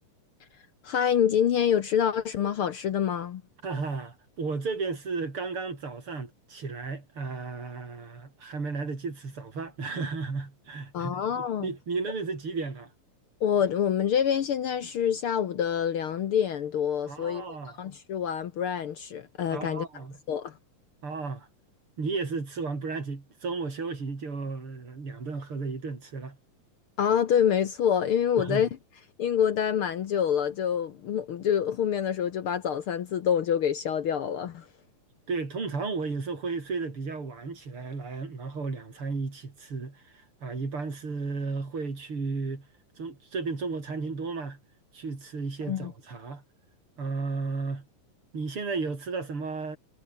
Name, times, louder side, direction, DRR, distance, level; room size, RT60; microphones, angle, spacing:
voice 1, 0.8-3.4 10.9-11.7 13.4-17.4 17.8-19.9 20.3-20.5 27.0-28.7 29.2-34.6 45.7-45.9, left 8 dB, 70° left, 1.3 m, -26 dB
voice 2, 3.6-12.9 17.1-17.8 19.5-20.2 21.0-21.5 22.0-26.4 28.4-28.7 35.3-42.7 43.0-44.6 44.9-46.4 47.0-47.9 48.3-49.8, right 4 dB, 40° right, 5.6 m, -34 dB
omnidirectional pair, 3.9 m